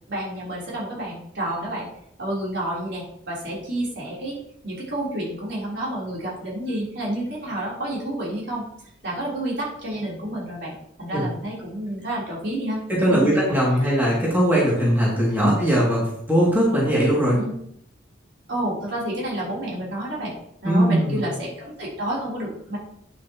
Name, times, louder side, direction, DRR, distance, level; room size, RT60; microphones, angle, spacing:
voice 1, 0.1-1.9 2.2-8.6 9.0-10.7 11.0-12.8 13.1-13.4 15.4-15.6 17.3-17.5 18.5-20.3 20.6-22.8, right 1 dB, 60° right, -5 dB, 3.9 m, -29 dB
voice 2, 12.9-17.4 20.6-21.2, equal, 10° right, -6 dB, 2.6 m, -20 dB
9.4 x 8.5 x 3.1 m, 0.71 s
head